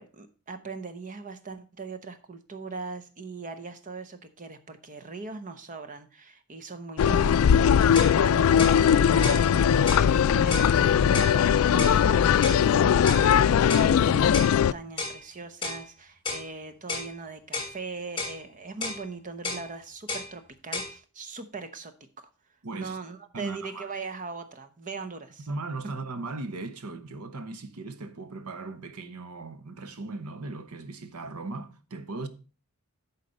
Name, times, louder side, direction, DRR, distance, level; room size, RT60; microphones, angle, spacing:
voice 1, 0.0-22.3 22.7-25.5, right 4 dB, 35° right, 0.8 m, -40 dB
sound 1, 7.0-14.7, left 8 dB, 65° left, 0.3 m, -20 dB
sound 2, 8.0-8.2 8.6-8.8 9.2-9.4 9.9-10.1 10.5-10.7 11.1-11.4 11.8-12.0 12.4-12.6 13.1-13.3 13.7-13.9 14.3-14.5 15.0-15.2 15.6-15.8 16.3-16.5 16.9-17.1 17.5-17.7 18.2-18.4 18.8-19.0 19.4-19.7 20.1-20.3 20.7-20.9, left 3 dB, 25° left, 1.8 m, -32 dB
voice 2, 22.6-23.0 23.3-23.9 25.5-32.3, right 3 dB, 90° right, 0.9 m, -37 dB
11.0 x 4.1 x 5.2 m
head